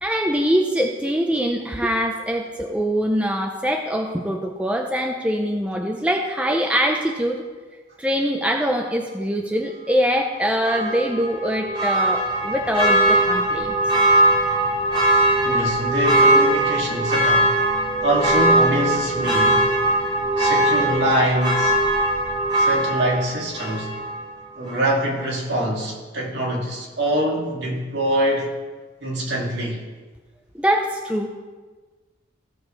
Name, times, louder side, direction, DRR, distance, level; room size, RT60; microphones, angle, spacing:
voice 1, 0.0-7.4 8.0-13.8 30.6-31.3, equal, 5° right, 2 dB, 0.5 m, -23 dB
Church bell, 10.6-24.3 24.7-24.8, right 1 dB, 25° right, 2.5 m, -20 dB
voice 2, 15.4-17.6 18.0-19.7 20.4-21.8 22.6-24.0 24.6-28.5 29.0-29.8, equal, 60° right, -4 dB, 2.2 m, -24 dB
16.0 x 6.2 x 3.2 m, 1.4 s
head